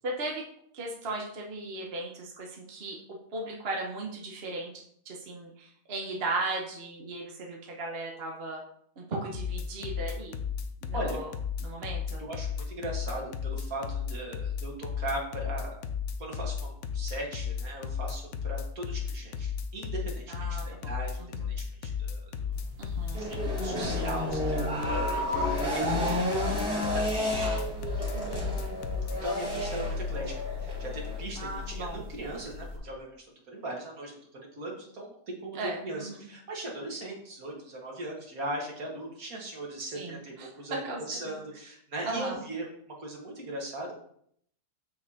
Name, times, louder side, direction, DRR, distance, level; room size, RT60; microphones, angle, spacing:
voice 1, 0.0-0.4 0.7-3.0 3.3-8.6 9.0-10.4 10.8-11.3 11.6-12.2 20.3-20.9 21.2-21.5 22.8-23.3 27.4-27.7 28.1-28.5 31.4-32.0 35.5-36.3 39.9-41.4 42.0-42.4, right 2 dB, 40° right, 0 dB, 1.2 m, -37 dB
sound 1, 9.3-29.2, left 7 dB, 60° left, 0.9 m, -33 dB
voice 2, 12.2-15.8 16.2-21.2 21.5-22.5 23.2-26.7 26.9-27.3 27.7-28.1 29.2-30.3 30.6-35.6 35.8-42.7 43.0-43.9, right 1 dB, 60° right, -1 dB, 2.0 m, -39 dB
sound 2, 22.5-32.8, equal, 80° right, 1.7 m, -37 dB
sound 3, 23.1-31.2, left 1 dB, 15° right, 2.1 m, -32 dB
7.4 x 6.6 x 2.8 m, 0.66 s
omnidirectional pair, 1.7 m